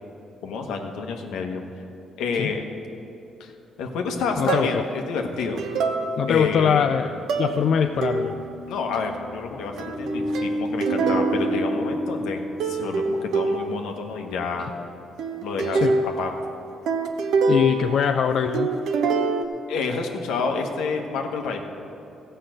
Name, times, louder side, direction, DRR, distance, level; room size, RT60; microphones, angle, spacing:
voice 1, 0.4-1.6 2.2-2.6 3.4-3.5 3.8-5.6 6.3-6.9 8.7-14.7 15.4-15.9 16.2-16.3 19.7-21.6, left 4 dB, 90° left, 3 dB, 1.2 m, -29 dB
voice 2, 4.4-4.8 6.2-7.1 7.4-8.3 15.7-16.0 17.5-18.7, left 7 dB, 65° left, 6 dB, 0.4 m, -22 dB
sound 1, 4.5-5.0 5.6-6.6 7.3-7.7 8.0-8.6 9.8-12.3 12.6-14.0 15.2-18.3 18.5-19.4, right 4 dB, 80° right, 0.8 m, -26 dB
sound 2, 6.9-13.7, left 1 dB, 5° right, 1.3 m, -32 dB
14.0 x 5.7 x 7.8 m, 2.9 s
cardioid pair, 90°, 0 cm